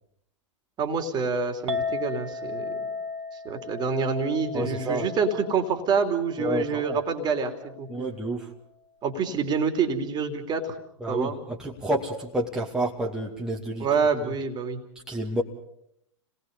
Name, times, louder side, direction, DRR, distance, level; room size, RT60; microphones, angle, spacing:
voice 1, 0.8-2.8 3.4-7.9 9.0-10.7 11.1-11.4 13.8-14.8, right 5 dB, 25° right, 6 dB, 3.1 m, -27 dB
Chink clink, 1.7-8.0, left 4 dB, 65° right, 2.3 m, -36 dB
voice 2, 4.5-5.1 6.4-7.0 7.9-8.5 11.0-13.9 14.2-14.3 15.1-15.4, right 1 dB, 5° right, -2 dB, 2.4 m, -29 dB
30.0 x 20.0 x 5.4 m, 0.73 s
figure-of-eight pair, 100°, 16 cm